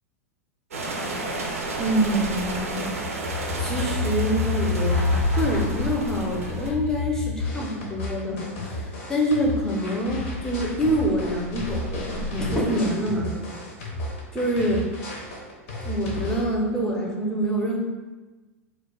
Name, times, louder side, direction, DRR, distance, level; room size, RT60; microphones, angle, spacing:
sound 1, 0.7-6.7, right 2 dB, 70° right, 0.5 m, -32 dB
sound 2, 1.0-7.7 10.3-12.4, left 4 dB, 75° left, 1.0 m, -28 dB
voice 1, 1.8-2.9 3.6-13.4 14.3-14.9 15.8-17.8, right 1 dB, 5° left, -2 dB, 0.6 m, -26 dB
sound 3, 7.4-16.4, left 1 dB, 55° left, 0.7 m, -34 dB
2.3 x 2.2 x 3.9 m, 1.2 s
figure-of-eight pair, 90°, 8 cm